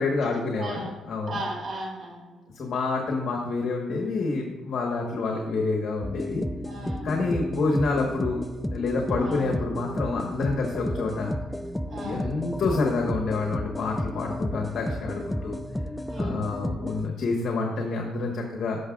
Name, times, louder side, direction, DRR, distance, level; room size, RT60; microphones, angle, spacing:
voice 1, 0.0-1.4 2.5-6.4 7.0-8.4 8.7-11.3 12.0-15.6 16.1-18.8, left 3 dB, 60° left, 0 dB, 1.4 m, -28 dB
voice 2, 0.5-0.9 1.3-2.4 6.6-7.1 9.2-9.6 11.9-12.3 16.0-16.5, right 1 dB, 55° right, -1 dB, 2.9 m, -36 dB
sound 1, 6.0-17.1, equal, 5° left, 0.5 m, -32 dB
15.5 x 6.1 x 2.5 m, 1.3 s
cardioid pair, 90°, 0 cm